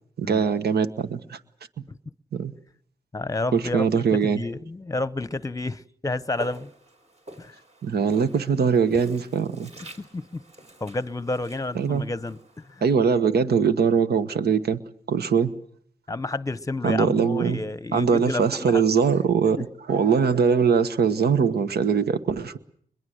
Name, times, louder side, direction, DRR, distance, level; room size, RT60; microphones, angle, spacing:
voice 1, 0.2-1.4 2.3-2.5 3.5-4.4 7.8-9.7 11.7-12.0 12.8-14.8 15.1-15.5 16.8-17.6 17.9-19.6 19.9-22.6, right 6 dB, 70° right, 1.3 m, -22 dB
voice 2, 3.1-6.7 7.4-7.6 10.0-10.4 10.8-12.8 16.1-18.8 19.6-19.7, left 2 dB, 20° left, 0.9 m, -30 dB
Walk footsteps, 6.3-13.4, equal, 40° right, 4.4 m, -46 dB
23.0 x 22.0 x 8.0 m
cardioid pair, 55°, 17 cm